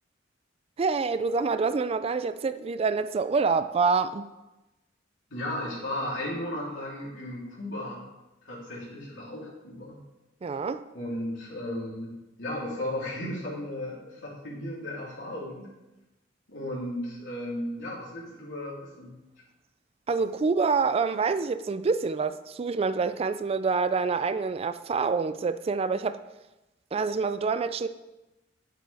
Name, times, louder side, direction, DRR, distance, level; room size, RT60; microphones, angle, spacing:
voice 1, 0.8-4.3 10.4-10.8 20.1-26.2 26.9-27.9, right 4 dB, 30° right, 0.3 m, -26 dB
voice 2, 5.3-8.0 8.4-10.0 10.9-15.7 16.5-19.1, left 1 dB, 80° left, 3.4 m, -35 dB
10.0 x 7.6 x 3.5 m
head